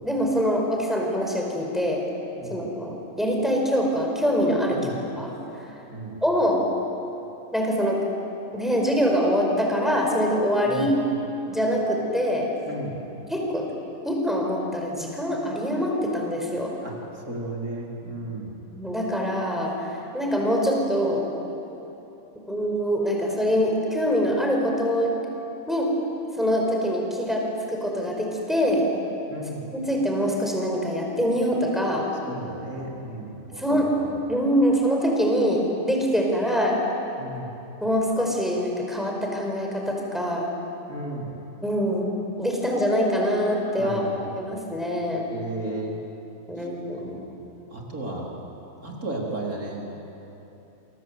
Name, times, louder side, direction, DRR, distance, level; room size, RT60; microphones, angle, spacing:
voice 1, 0.0-2.0 2.5-5.3 5.6-5.7 6.2-6.6 7.5-8.0 8.5-10.9 11.5-12.5 13.3-13.7 14.0-16.7 18.7-21.2 22.5-25.2 25.7-25.9 26.4-28.9 29.7-32.1 33.6-33.9 34.3-36.8 37.8-40.5 41.6-42.1 42.4-44.0 44.4-45.3 46.5-47.1, equal, ahead, -1 dB, 5.1 m, -24 dB
voice 2, 12.7-13.0 16.8-18.6 29.3-29.7 32.3-33.9 37.2-37.5 40.9-41.3 43.8-44.3 45.3-46.0 47.0-47.2 47.7-48.3 48.8-49.8, right 2 dB, 85° right, -2 dB, 4.5 m, -34 dB
28.5 x 23.0 x 8.1 m, 3.0 s
omnidirectional pair, 1.5 m